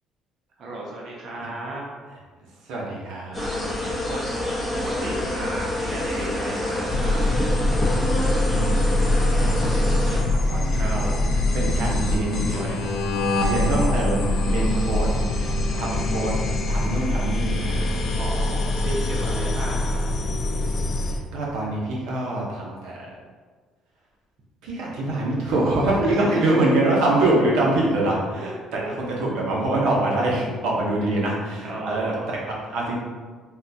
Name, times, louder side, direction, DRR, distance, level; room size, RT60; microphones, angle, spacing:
voice 1, 0.6-1.8 3.3-4.2 4.7-7.2 10.7-11.2 13.3-14.1 18.1-20.0 26.0-26.6 28.4-28.9 31.6-32.3, right 1 dB, 50° right, -3 dB, 0.5 m, -34 dB
voice 2, 2.7-3.4 8.5-11.1 11.5-12.9 13.4-15.1 15.3-16.3 16.7-17.9 21.0-23.1 24.6-33.0, right 2 dB, 85° right, -3 dB, 0.7 m, -25 dB
sound 1, 3.3-10.2, left 1 dB, 10° left, 0.7 m, -27 dB
sound 2, 6.9-21.2, left 1 dB, 50° left, 0.4 m, -23 dB
3.6 x 2.2 x 2.7 m, 1.5 s
cardioid pair, 155°, 0 cm